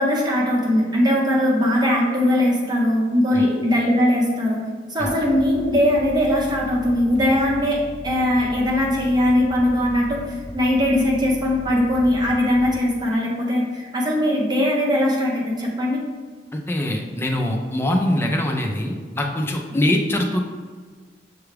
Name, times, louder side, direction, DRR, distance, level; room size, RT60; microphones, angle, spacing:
voice 1, 0.0-4.6 4.9-10.2 10.5-16.0, left 1 dB, 25° right, -2 dB, 0.8 m, -20 dB
sound 1, 5.0-12.8, left 1 dB, 45° left, 0.8 m, -38 dB
voice 2, 16.5-20.4, left 1 dB, 15° left, 1 dB, 0.4 m, -23 dB
6.8 x 2.3 x 3.3 m, 1.5 s
head